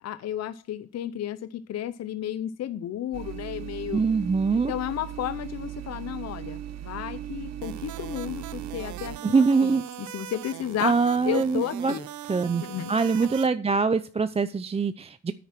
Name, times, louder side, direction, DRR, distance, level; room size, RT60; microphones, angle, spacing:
voice 1, 0.0-4.0 4.7-10.9 11.3-12.1 12.6-12.9, left 11 dB, 60° left, 13 dB, 0.7 m, -33 dB
sound 1, 3.1-9.2, right 11 dB, 60° right, 1.0 m, -38 dB
voice 2, 3.9-4.7 9.2-9.8 10.8-11.9 12.3-12.6 12.9-15.3, right 4 dB, 20° right, 12 dB, 0.5 m, -23 dB
sound 2, 7.6-13.5, right 13 dB, 75° right, 0.7 m, -40 dB
9.3 x 9.2 x 5.9 m, 0.39 s
cardioid pair, 90°, 30 cm